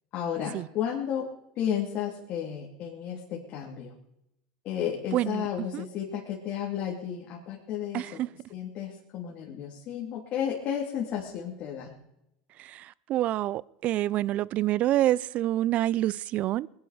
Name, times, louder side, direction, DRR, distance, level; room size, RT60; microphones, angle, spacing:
voice 1, 0.1-1.3 1.6-4.0 4.6-8.2 8.5-11.9, left 9 dB, 50° left, 3.0 m, -33 dB
voice 2, 5.1-5.5 5.7-5.8 7.9-8.1 12.6-16.7, right 14 dB, 45° right, 0.5 m, -27 dB
20.5 x 11.5 x 5.0 m
supercardioid pair, 110°, 3 cm